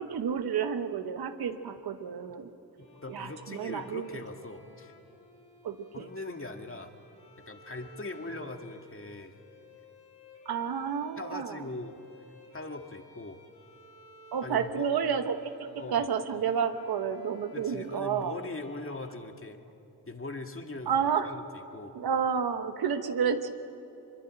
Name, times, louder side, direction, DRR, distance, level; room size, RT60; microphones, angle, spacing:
voice 1, 0.0-2.5 3.1-4.0 5.6-6.1 10.4-11.6 14.3-18.4 20.9-21.3 21.9-23.5, right 7 dB, 85° right, 8 dB, 1.2 m, -30 dB
Bowed string instrument, 2.8-20.0, left 2 dB, 85° left, 3.6 m, -57 dB
voice 2, 2.8-4.9 5.9-6.9 7.5-9.3 11.2-12.0 12.5-13.4 14.4-14.9 15.8-16.1 17.5-19.6 20.1-21.9, left 2 dB, 35° left, 5 dB, 2.2 m, -41 dB
23.0 x 22.5 x 8.9 m, 3.0 s
supercardioid pair, 40°, 36 cm